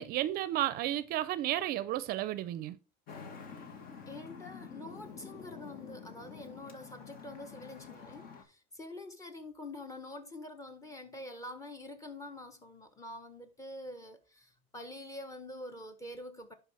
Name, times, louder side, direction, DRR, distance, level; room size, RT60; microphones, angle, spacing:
voice 1, 0.0-2.8, right 14 dB, 50° right, 0.6 m, -32 dB
Traffic noise roadway noise, 3.1-8.4, left 5 dB, 45° left, 1.8 m, -48 dB
voice 2, 4.1-16.5, left 1 dB, 15° left, 1.5 m, -46 dB
11.0 x 4.7 x 3.5 m
cardioid pair, 135°, 20 cm